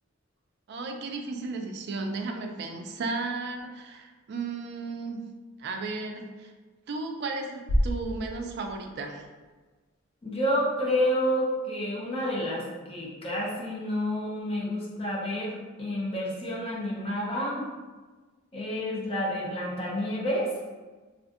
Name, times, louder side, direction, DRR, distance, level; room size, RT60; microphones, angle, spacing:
voice 1, 0.7-5.2 5.6-6.5 6.9-9.2, right 3 dB, 55° right, 3 dB, 0.3 m, -34 dB
sound 1, 7.7-9.8, equal, 75° left, 0.4 m, -30 dB
voice 2, 10.2-17.7 18.5-20.5, equal, 30° left, -4 dB, 0.6 m, -29 dB
2.6 x 2.4 x 2.4 m, 1.3 s
head